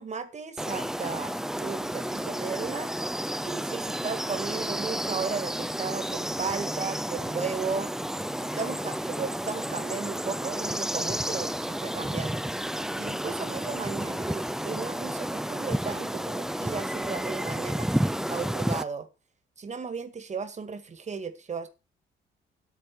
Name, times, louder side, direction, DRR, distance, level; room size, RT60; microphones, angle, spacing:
voice 1, 0.0-2.9 3.4-7.9 8.4-12.4 13.0-19.1 19.6-21.7, right 5 dB, 35° right, 2.0 m, -35 dB
sound 1, 0.6-18.8, equal, ahead, 0.6 m, -31 dB
10.5 x 9.2 x 4.6 m
cardioid pair, 90°, 20 cm